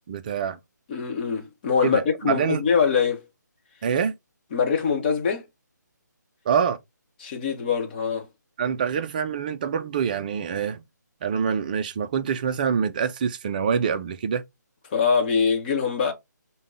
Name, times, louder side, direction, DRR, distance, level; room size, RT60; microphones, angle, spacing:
voice 1, 0.1-0.6 1.8-2.6 3.8-4.1 6.5-6.8 8.6-10.8 11.2-14.4, right 7 dB, 25° right, 0.4 m, -25 dB
voice 2, 0.9-3.3 4.5-5.4 7.2-8.3 14.9-16.1, left 6 dB, 30° left, 1.0 m, -23 dB
5.3 x 2.2 x 3.5 m
figure-of-eight pair, 155°, 10 cm